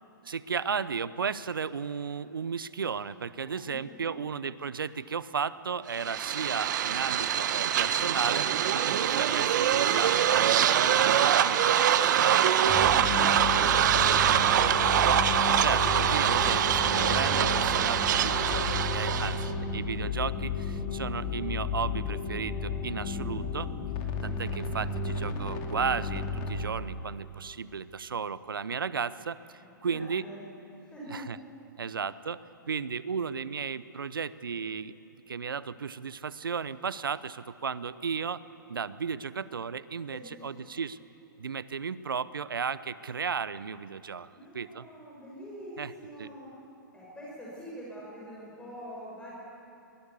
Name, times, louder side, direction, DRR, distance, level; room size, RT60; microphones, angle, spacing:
voice 1, 0.2-12.8 15.6-19.4 19.7-23.7 24.2-30.2 31.1-31.4 31.8-32.4 32.7-34.9 35.3-38.4 38.7-41.0 41.4-44.3 44.5-44.9 45.8-45.9 46.2-46.3, right 6 dB, 80° right, 17 dB, 0.8 m, -34 dB
voice 2, 3.4-4.2 12.7-14.9 19.1-19.8 20.1-20.9 22.9-23.8 29.5-30.4 30.8-31.3 40.1-40.7 44.3-46.6 46.9-49.3, equal, 10° left, -6 dB, 6.4 m, -46 dB
sound 1, 5.9-19.5, right 10 dB, 60° right, 1.0 m, -24 dB
sound 2, 12.7-26.7, left 5 dB, 40° left, 2.7 m, -33 dB
23.5 x 17.5 x 8.3 m, 2.8 s
hypercardioid pair, 115°, 11 cm